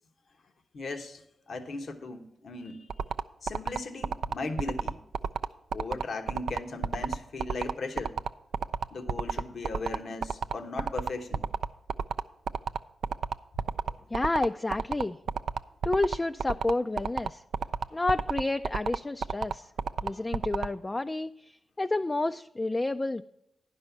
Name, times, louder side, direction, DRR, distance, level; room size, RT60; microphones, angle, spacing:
voice 1, 0.7-2.9 3.4-5.0 5.7-8.1 8.9-11.4, left 3 dB, 70° left, 6 dB, 1.0 m, -37 dB
sound 1, 2.9-20.7, right 6 dB, 85° right, 0.3 m, -30 dB
voice 2, 14.1-15.2 15.8-17.4 17.9-19.7 20.0-23.2, left 2 dB, 30° left, 8 dB, 0.3 m, -30 dB
10.5 x 5.5 x 7.0 m, 0.83 s
supercardioid pair, 45°, 0 cm